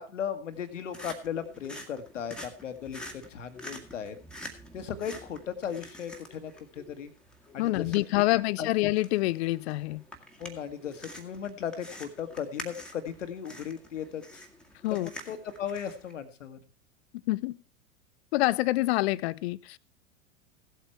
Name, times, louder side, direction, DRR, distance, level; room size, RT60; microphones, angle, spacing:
voice 1, 0.0-4.1 4.7-7.1 7.5-7.9 8.4-8.7 10.4-14.4 14.9-16.6, left 8 dB, 80° left, 9 dB, 1.6 m, -37 dB
sound 1, 0.5-16.1, left 1 dB, ahead, 1.8 m, -47 dB
voice 2, 7.6-10.0 14.8-15.1 17.3-17.6 18.3-19.8, left 19 dB, 60° left, 20 dB, 0.5 m, -26 dB
16.0 x 8.3 x 4.4 m, 0.34 s
hypercardioid pair, 90°, 37 cm